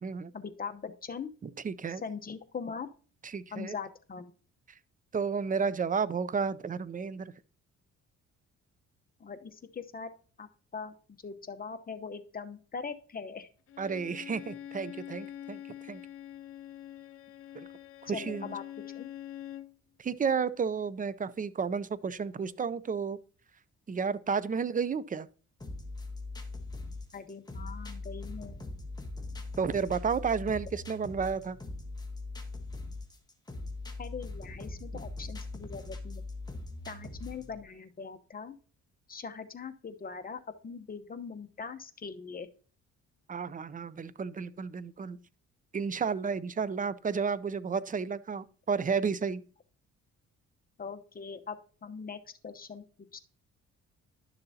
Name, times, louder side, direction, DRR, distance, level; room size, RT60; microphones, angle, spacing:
voice 1, 0.3-1.3 1.9-2.9 3.5-4.3 9.2-10.1 10.4-10.5 10.7-10.9 11.2-13.5 18.1-18.6 18.9-19.1 27.1-28.5 34.0-36.2 36.9-38.6 39.1-42.5 50.8-51.6 51.8-52.8 53.1-53.2, left 5 dB, 30° left, 0.9 m, -41 dB
voice 2, 1.4-2.0 3.2-3.7 5.1-7.3 13.8-15.6 15.9-16.0 17.5-17.7 18.0-18.5 20.0-23.2 23.9-25.3 29.6-31.6 43.3-45.2 45.7-49.4, right 6 dB, 25° right, 0.5 m, -32 dB
Bowed string instrument, 13.7-19.8, left 11 dB, 50° left, 0.6 m, -45 dB
sound 1, 25.6-37.6, left 2 dB, 15° left, 1.3 m, -41 dB
11.5 x 6.8 x 2.8 m
cardioid pair, 90°, 30 cm